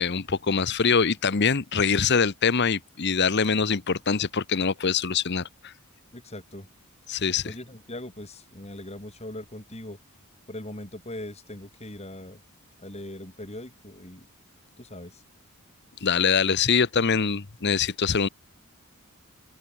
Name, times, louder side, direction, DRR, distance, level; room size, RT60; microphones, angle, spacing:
voice 1, 0.0-5.5 7.1-7.5 16.0-18.3, left 5 dB, 50° left, 0.9 m, -24 dB
voice 2, 6.1-6.7 7.1-10.0 10.5-12.4 12.8-14.3 14.8-15.2, left 1 dB, 30° left, 3.4 m, -40 dB
open air
head